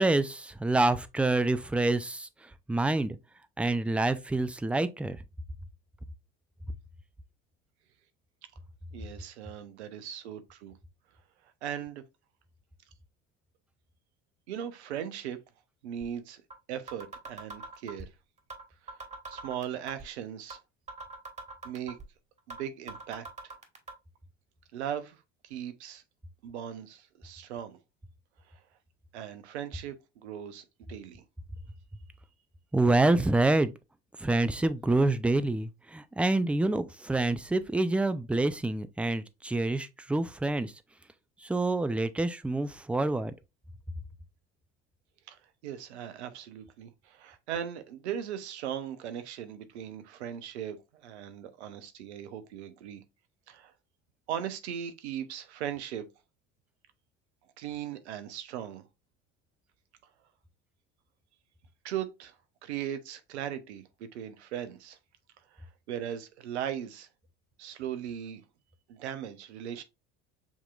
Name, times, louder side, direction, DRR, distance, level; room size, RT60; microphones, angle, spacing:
voice 1, 0.0-3.2 3.6-5.2 32.7-33.7 34.2-40.7 41.4-43.3, right 2 dB, 5° right, 0.4 m, -27 dB
voice 2, 8.9-10.7 11.4-12.0 14.5-15.4 15.8-16.4 16.7-18.1 18.8-19.0 19.3-20.6 21.6-22.0 22.5-23.5 24.7-26.0 26.4-27.8 28.5-28.6 29.1-31.2 45.3-53.0 53.5-53.7 54.3-56.0 57.6-58.8 61.8-62.4 62.6-65.0 65.5-67.1 67.6-68.4 68.9-69.8, right 9 dB, 80° right, 0.8 m, -38 dB
sound 1, 16.0-16.1 16.5-16.6 16.9-18.1 18.5-18.6 18.9-20.1 20.5-20.6 20.9-22.1 22.5-22.6 22.9-23.9, right 3 dB, 20° right, 1.5 m, -41 dB
7.1 x 2.9 x 2.4 m
hypercardioid pair, 70°, 33 cm